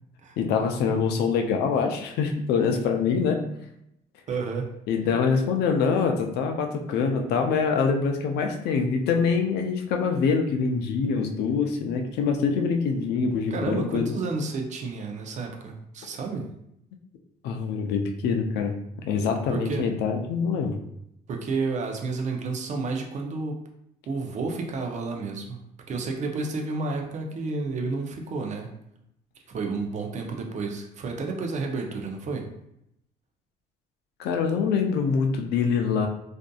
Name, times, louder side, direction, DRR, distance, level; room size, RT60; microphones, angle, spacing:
voice 1, 0.4-3.4 4.9-14.1 17.4-18.8 19.0-20.7 34.2-36.1, left 5 dB, 75° left, 4 dB, 0.5 m, -24 dB
voice 2, 4.3-4.7 13.5-16.5 19.5-19.9 21.3-23.6 24.0-25.6 25.9-28.7 29.5-32.5, right 3 dB, 45° right, 2 dB, 0.5 m, -31 dB
2.6 x 2.5 x 2.3 m, 0.78 s
cardioid pair, 110°, 17 cm